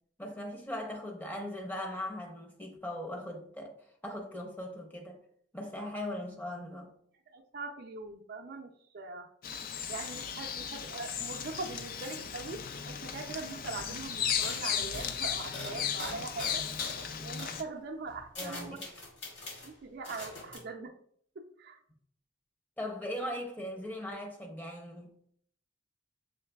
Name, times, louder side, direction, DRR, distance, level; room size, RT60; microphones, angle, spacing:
voice 1, 0.2-3.7 4.0-5.2 5.5-6.9 16.1-16.2 18.4-18.9 22.8-25.1, left 1 dB, 10° left, 0.7 m, -39 dB
voice 2, 7.3-8.7 8.9-9.3 9.9-16.7 17.2-18.8 19.6-21.0 21.4-21.8, right 3 dB, 55° right, 0.5 m, -42 dB
Bird vocalization bird call bird song, 9.4-17.6, left 8 dB, 50° left, 0.4 m, -36 dB
sound 1, 13.3-13.4 13.6-13.9 14.4-17.1 17.4-17.6 18.1-19.7 20.0-20.6, left 2 dB, 75° left, 1.6 m, -43 dB
6.4 x 3.2 x 2.3 m
head